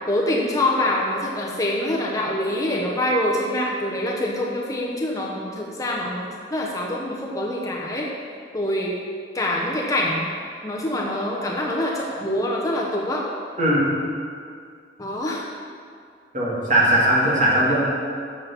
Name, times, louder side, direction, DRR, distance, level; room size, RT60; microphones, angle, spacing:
voice 1, 0.1-8.1 8.5-9.0 9.3-10.3 10.6-13.3 15.0-15.4, left 1 dB, 20° left, -3 dB, 0.9 m, -25 dB
voice 2, 16.3-17.9, right 1 dB, 45° right, -6 dB, 2.4 m, -19 dB
7.2 x 6.3 x 7.1 m, 2.2 s
head